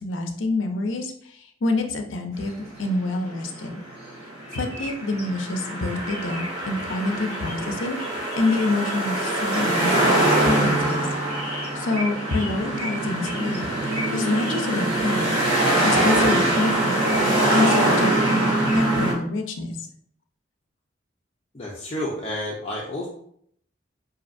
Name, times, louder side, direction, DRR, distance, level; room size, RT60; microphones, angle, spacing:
voice 1, 0.0-3.8 4.5-11.1 11.7-13.7 14.1-15.3 15.8-19.7, left 2 dB, 85° left, 4 dB, 0.5 m, -27 dB
sound 1, 2.5-19.1, right 1 dB, 30° right, 1.3 m, -23 dB
voice 2, 21.5-23.1, left 1 dB, 30° left, -4 dB, 0.5 m, -30 dB
5.1 x 2.6 x 2.5 m, 0.65 s
head